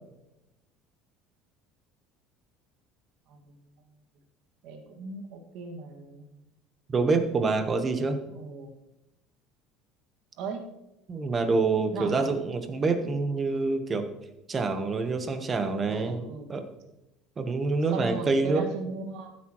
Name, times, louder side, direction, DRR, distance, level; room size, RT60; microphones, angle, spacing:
voice 1, 3.3-3.9 4.6-6.3 8.3-8.7 10.4-10.7 11.8-12.3 15.9-16.5 17.9-19.3, right 3 dB, 60° right, 3 dB, 1.9 m, -38 dB
voice 2, 6.9-8.2 11.1-14.1 14.5-16.7 17.4-18.6, right 3 dB, 20° right, 7 dB, 1.0 m, -26 dB
14.5 x 8.5 x 3.1 m, 0.93 s
cardioid pair, 160°, 0 cm